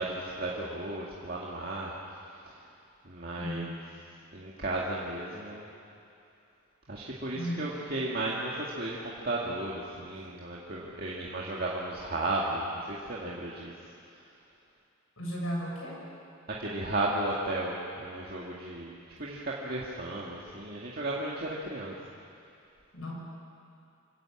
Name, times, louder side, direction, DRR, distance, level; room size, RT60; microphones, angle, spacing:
voice 1, 0.0-2.0 2.4-2.6 3.0-3.8 4.3-5.7 6.9-13.7 16.5-21.9, right 2 dB, 45° right, -4 dB, 2.1 m, -34 dB
voice 2, 7.3-7.7 10.2-10.3 15.2-16.0 22.9-23.1, equal, 85° left, -3 dB, 7.3 m, -35 dB
26.0 x 14.5 x 8.8 m, 2.5 s
head